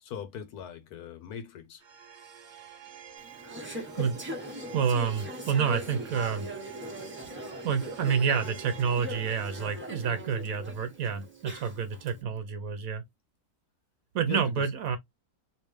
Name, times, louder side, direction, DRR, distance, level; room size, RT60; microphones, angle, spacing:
voice 1, 0.0-1.8 14.3-14.7, left 8 dB, 75° left, 1.3 m, -40 dB
sound 1, 1.8-12.9, right 8 dB, 50° right, 0.5 m, -50 dB
Conversation / Chatter, 3.2-12.1, equal, 10° right, 0.9 m, -40 dB
voice 2, 4.7-6.5 7.6-13.0 14.1-15.0, right 6 dB, 65° right, 1.1 m, -28 dB
3.2 x 3.0 x 3.1 m
omnidirectional pair, 1.7 m